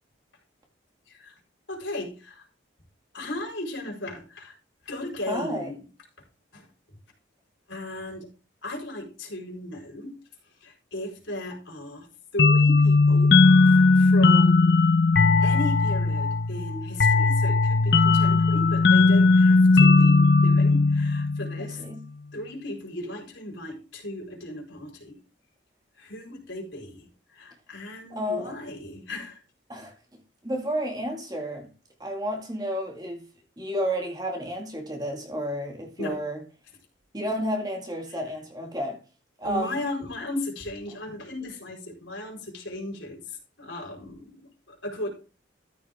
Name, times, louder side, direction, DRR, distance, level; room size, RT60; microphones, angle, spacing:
voice 1, 1.1-1.4 1.7-2.4 3.1-4.5 4.8-5.8 6.5-6.7 7.7-8.3 8.6-10.1 10.6-12.1 12.3-13.3 13.6-14.7 15.4-21.8 22.3-25.2 26.0-29.4 36.0-36.2 38.1-38.2 39.4-45.1, left 1 dB, 70° left, 4.5 m, -36 dB
voice 2, 5.3-5.7 21.8-22.0 28.1-28.5 29.7-29.9 30.4-31.7 32.0-33.2 33.6-36.4 37.1-39.0 39.4-39.8, equal, 20° right, 2.1 m, -31 dB
sound 1, 12.4-21.7, left 3 dB, 55° left, 0.8 m, -18 dB
13.5 x 6.4 x 3.6 m
head